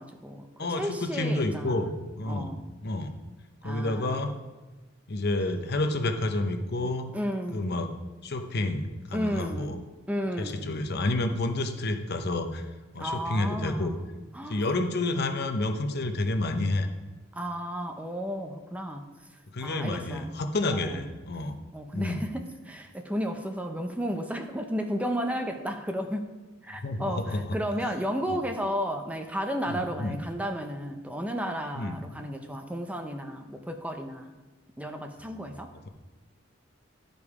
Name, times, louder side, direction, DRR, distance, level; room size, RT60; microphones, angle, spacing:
voice 1, 0.0-1.9 2.3-2.6 3.6-4.3 7.1-7.8 9.1-10.7 13.0-14.1 14.3-14.6 17.3-19.1 19.6-20.3 20.7-21.0 21.7-26.3 26.6-34.3 34.8-35.7, equal, 5° right, 5 dB, 0.5 m, -33 dB
voice 2, 0.6-2.5 2.8-3.1 3.6-4.3 5.1-7.1 7.5-7.9 8.2-9.7 10.4-12.7 12.9-13.9 14.5-16.9 19.5-21.6 21.9-22.3 26.8-27.4 29.7-30.2 31.7-32.0 35.3-35.5, left 2 dB, 55° left, 7 dB, 0.7 m, -29 dB
11.5 x 5.3 x 4.8 m, 1.1 s
head